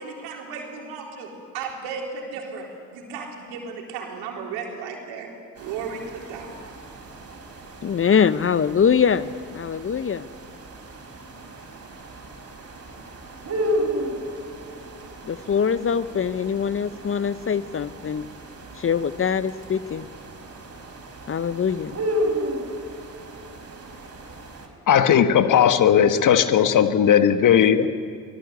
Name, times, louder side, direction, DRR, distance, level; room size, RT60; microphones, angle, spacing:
voice 1, 0.0-5.3 5.6-6.7, right 5 dB, 70° right, 1 dB, 4.0 m, -35 dB
sound 1, 5.5-24.7, equal, 40° right, 5.2 m, -34 dB
voice 2, 7.8-10.3 15.2-18.3 18.8-20.1 21.3-22.0, left 7 dB, 35° left, 15 dB, 0.9 m, -23 dB
voice 3, 24.9-27.9, left 9 dB, 50° left, 10 dB, 1.6 m, -17 dB
24.5 x 18.0 x 8.3 m, 2.2 s
hypercardioid pair, 50°, 39 cm